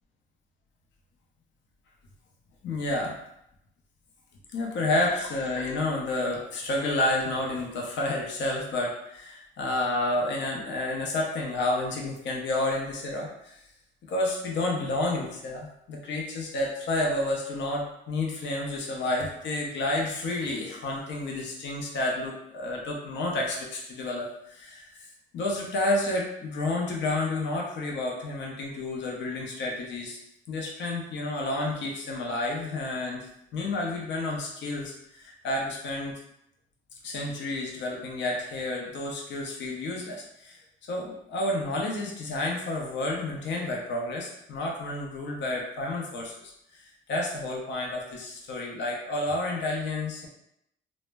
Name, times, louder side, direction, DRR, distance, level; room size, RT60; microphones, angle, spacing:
voice 1, 2.6-3.2 4.5-13.6 14.1-25.1 25.3-30.2 30.5-36.1 37.0-40.6 40.9-46.3 46.7-50.3, left 2 dB, 65° left, -1 dB, 0.6 m, -30 dB
2.0 x 2.0 x 3.3 m, 0.78 s
cardioid pair, 90°, 20 cm